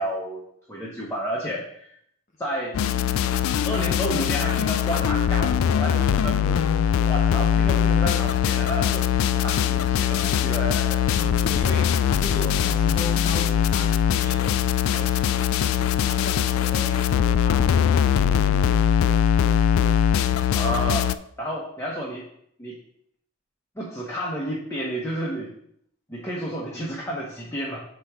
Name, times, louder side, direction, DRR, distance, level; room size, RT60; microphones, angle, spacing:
voice 1, 0.0-1.9 2.4-2.8 3.6-6.7 7.1-11.1 20.5-21.1 21.4-22.3 22.6-22.8 23.8-25.5 26.1-27.8, equal, 15° left, -4 dB, 0.9 m, -31 dB
sound 1, 2.7-21.2, left 8 dB, 85° left, 0.3 m, -21 dB
voice 2, 11.2-18.4, left 1 dB, 40° left, -1 dB, 0.9 m, -38 dB
8.1 x 3.0 x 4.8 m, 0.69 s
head